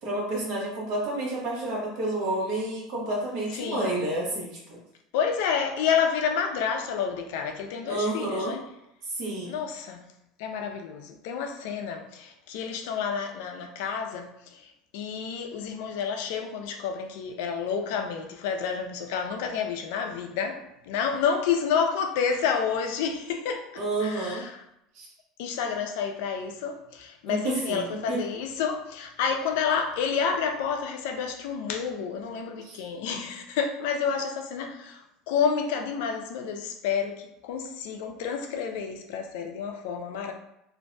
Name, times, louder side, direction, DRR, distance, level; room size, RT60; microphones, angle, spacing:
voice 1, 0.0-4.8 7.9-8.5 9.1-9.6 23.7-24.4 24.9-25.1 27.3-28.2 32.6-32.8, right 2 dB, 60° right, 1.0 m, -30 dB
voice 2, 3.5-4.0 5.1-8.6 9.4-10.0 10.4-24.6 25.4-40.3, left 6 dB, 75° left, 0.3 m, -29 dB
2.5 x 2.1 x 2.5 m
supercardioid pair, 125°, 0 cm